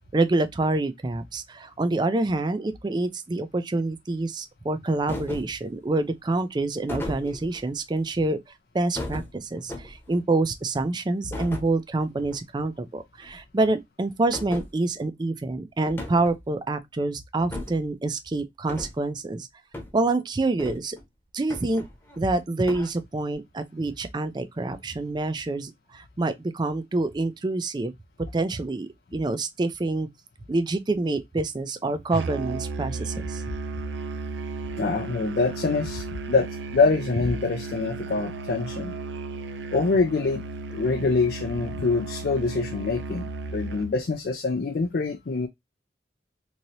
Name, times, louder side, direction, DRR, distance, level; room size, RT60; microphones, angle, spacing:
voice 1, 0.1-8.4 8.7-19.5 19.9-21.0 21.3-21.8 22.2-27.9 28.3-30.1 30.5-33.4, right 2 dB, 25° right, 0.4 m, -27 dB
sound 1, 5.1-5.6 6.9-7.6 9.0-10.2 11.3-11.7 12.1-12.4 12.6-12.7 13.2-13.4 14.3-14.7 15.9-16.4 17.4-17.9 18.7-19.0 19.7-19.9 20.6-21.0 21.5-22.2 22.7-22.9, left 1 dB, 15° left, 0.9 m, -36 dB
Musical instrument, 32.1-44.0, right 3 dB, 90° right, 0.5 m, -34 dB
voice 2, 34.8-36.5 36.7-38.9 39.7-40.4 40.7-43.3 43.5-45.5, left 4 dB, 60° left, 0.4 m, -25 dB
3.1 x 2.8 x 2.6 m
head